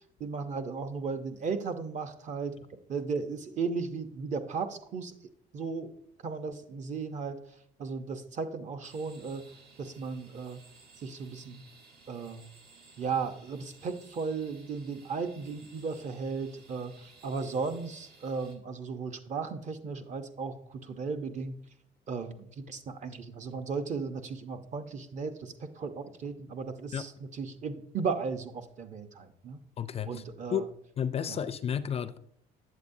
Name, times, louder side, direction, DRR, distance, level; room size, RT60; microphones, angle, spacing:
voice 1, 0.2-2.6 2.9-5.1 5.5-5.9 6.2-7.4 7.8-9.4 9.8-10.6 11.0-11.6 12.1-12.5 13.0-21.5 22.1-29.6 30.1-30.6 31.3-31.4, right 5 dB, 45° right, 0.8 m, -35 dB
sound 1, 8.8-18.6, right 3 dB, 70° right, 1.4 m, -57 dB
voice 2, 29.8-30.2 30.5-30.6 31.0-32.2, left 8 dB, 35° left, 0.4 m, -32 dB
8.2 x 7.5 x 2.6 m
cardioid pair, 110°, 17 cm